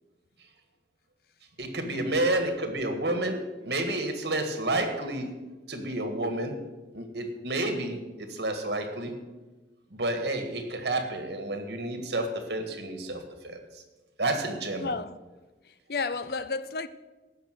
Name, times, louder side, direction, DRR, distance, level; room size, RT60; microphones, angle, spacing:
voice 1, 1.6-5.3 5.7-6.6 6.9-9.2 9.9-13.8 14.2-14.9, right 2 dB, 70° right, 1.8 m, -30 dB
voice 2, 14.8-15.1 15.6-16.9, left 4 dB, 55° left, 0.5 m, -32 dB
15.0 x 6.0 x 7.8 m
head